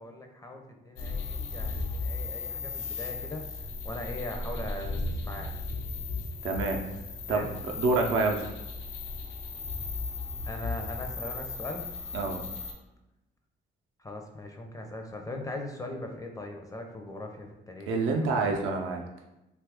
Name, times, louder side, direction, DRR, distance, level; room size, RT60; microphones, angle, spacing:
voice 1, 0.0-5.5 7.3-7.5 10.4-11.9 14.0-18.5, left 1 dB, 15° left, 2 dB, 0.4 m, -40 dB
sound 1, 1.0-12.7, left 3 dB, 75° left, 0.6 m, -36 dB
voice 2, 6.4-6.8 7.3-7.4 7.8-8.6 12.1-12.4 17.9-19.0, right 3 dB, 90° right, 2 dB, 0.5 m, -27 dB
2.7 x 2.4 x 3.4 m, 0.96 s
cardioid pair, 90°, 20 cm